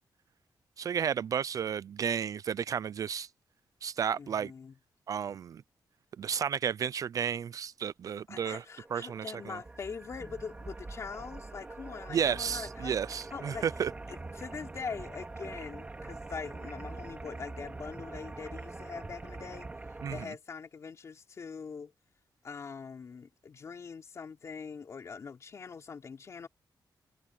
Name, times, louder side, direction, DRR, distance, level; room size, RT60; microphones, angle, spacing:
voice 1, 0.8-3.3 3.8-4.5 5.1-5.6 6.2-8.6 8.9-9.6 12.1-13.9 20.0-20.3, right 8 dB, 50° right, 0.4 m, -32 dB
voice 2, 4.1-4.7 8.3-13.0 13.3-13.7 14.1-19.7 20.1-21.9 22.4-26.5, left 5 dB, 40° left, 4.1 m, -43 dB
sound 1, 8.7-20.3, right 2 dB, 20° right, 2.4 m, -44 dB
wide cardioid pair, 175°, 8 cm